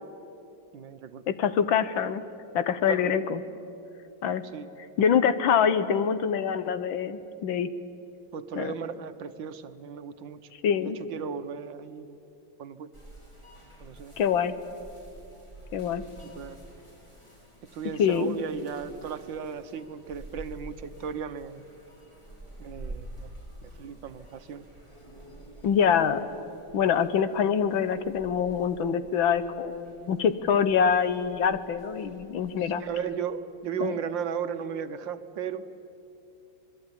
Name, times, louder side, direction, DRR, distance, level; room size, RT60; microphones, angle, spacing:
voice 1, 0.7-1.2 2.9-3.1 4.5-4.7 8.3-10.5 10.8-12.2 12.6-12.9 13.8-14.1 16.2-16.6 17.6-21.7 22.6-23.3 23.6-24.6 32.6-35.7, right 7 dB, 70° right, 11 dB, 1.7 m, -36 dB
voice 2, 1.3-2.2 2.5-3.4 4.2-4.4 5.0-7.7 8.6-8.7 10.6-11.0 14.2-14.5 15.7-16.0 18.0-18.4 25.6-26.2 26.7-32.8 33.8-34.0, left 7 dB, 75° left, 13 dB, 1.8 m, -25 dB
sound 1, 12.9-32.8, right 1 dB, 15° left, 6.4 m, -48 dB
26.0 x 21.5 x 10.0 m, 2.8 s
omnidirectional pair, 2.2 m